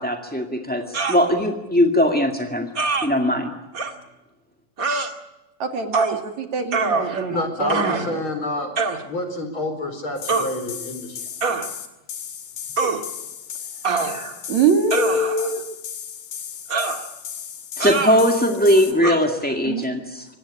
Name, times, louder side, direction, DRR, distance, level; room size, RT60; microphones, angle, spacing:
voice 1, 0.0-2.7 3.0-3.5 17.8-20.3, equal, 5° left, 3 dB, 0.8 m, -20 dB
sound 1, 0.9-1.2 2.7-3.1 3.7-3.9 4.8-5.1 5.9-6.2 6.7-7.3 7.7-8.1 8.8-9.0 10.3-10.5 11.4-11.7 12.8-13.0 13.8-14.4 14.9-15.5 16.7-17.0 17.8-18.2 19.0-19.2, right 4 dB, 30° right, 1.8 m, -24 dB
voice 2, 5.6-8.2 14.5-15.6 19.7-19.9, right 3 dB, 55° right, 6 dB, 3.3 m, -23 dB
voice 3, 7.3-8.7 9.1-11.2, left 2 dB, 35° left, 7 dB, 4.9 m, -28 dB
sound 2, 10.2-18.9, left 8 dB, 85° left, 4.3 m, -35 dB
25.5 x 18.5 x 9.9 m, 1.1 s
omnidirectional pair, 4.0 m